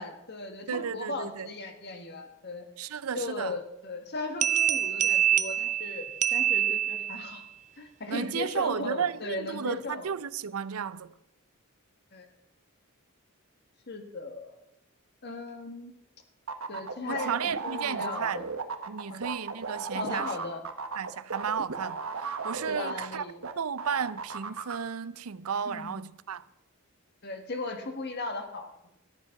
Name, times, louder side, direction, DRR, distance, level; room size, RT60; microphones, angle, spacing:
voice 1, 0.0-2.6 3.1-7.4 7.8-10.0 12.1-12.3 13.9-14.5 15.2-15.9 16.7-18.4 19.1-19.2 19.9-20.6 22.7-23.4 25.6-26.0 27.2-28.9, left 2 dB, 50° left, 1.5 m, -37 dB
voice 2, 0.7-1.5 2.8-3.6 8.1-11.1 17.1-18.4 18.9-20.4 21.0-23.3 23.6-26.4, right 7 dB, 90° right, 0.6 m, -33 dB
sound 1, 4.4-7.4, right 10 dB, 35° right, 0.6 m, -26 dB
sound 2, 16.5-23.5 23.8-24.8, right 4 dB, 70° right, 1.2 m, -35 dB
13.5 x 10.5 x 5.8 m
head